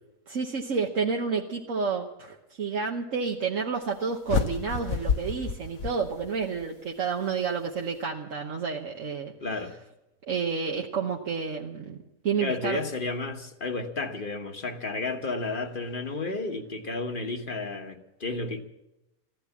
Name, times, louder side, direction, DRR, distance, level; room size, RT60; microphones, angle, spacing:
voice 1, 0.3-9.3 10.3-12.0 12.2-12.8, right 5 dB, 65° right, 0 dB, 1.4 m, -30 dB
sound 1, 4.3-6.6, left 6 dB, 75° left, 1.5 m, -29 dB
voice 2, 9.4-9.7 12.4-18.6, left 3 dB, 40° left, 5 dB, 1.4 m, -32 dB
15.0 x 13.0 x 7.2 m, 0.93 s
omnidirectional pair, 1.4 m